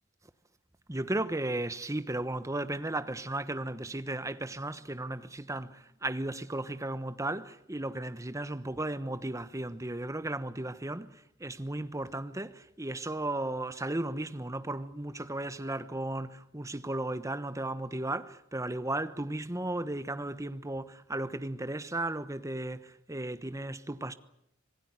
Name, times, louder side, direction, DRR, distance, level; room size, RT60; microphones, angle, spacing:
voice 1, 0.9-24.1, right 1 dB, 15° right, 1.1 m, -35 dB
26.0 x 19.0 x 9.5 m
head